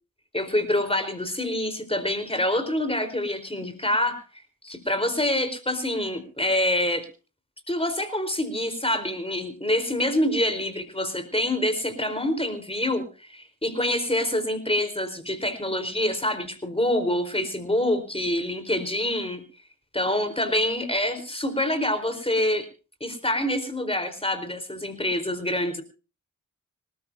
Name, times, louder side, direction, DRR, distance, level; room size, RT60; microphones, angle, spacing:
voice 1, 0.3-7.1 7.7-19.4 19.9-22.7 23.0-25.8, left 1 dB, 15° left, 10 dB, 4.4 m, -26 dB
26.0 x 13.5 x 2.8 m, 0.34 s
cardioid pair, 50°, 34 cm